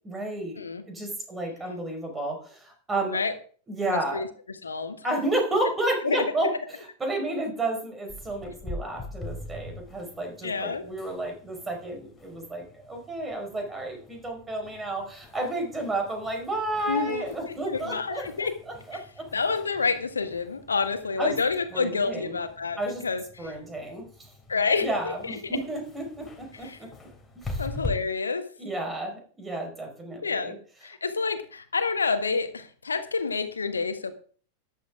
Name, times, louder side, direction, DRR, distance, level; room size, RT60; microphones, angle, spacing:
voice 1, 0.0-0.6 0.9-3.2 3.7-4.2 5.0-6.5 7.0-19.3 21.2-21.3 21.7-22.4 22.8-23.0 23.4-24.3 24.8-26.9 27.3-27.6 28.6-30.5, right 2 dB, 15° right, 3 dB, 4.7 m, -31 dB
voice 2, 3.9-5.1 6.0-6.2 10.4-10.9 16.9-18.5 18.9-19.0 19.3-23.6 24.5-25.6 26.6-26.8 27.6-28.5 30.2-30.5 30.8-34.1, left 4 dB, 75° left, 10 dB, 1.4 m, -29 dB
sound 1, 8.1-27.9, left 2 dB, 15° left, 3.1 m, -43 dB
13.5 x 11.0 x 3.7 m, 0.44 s
figure-of-eight pair, 90°, 0 cm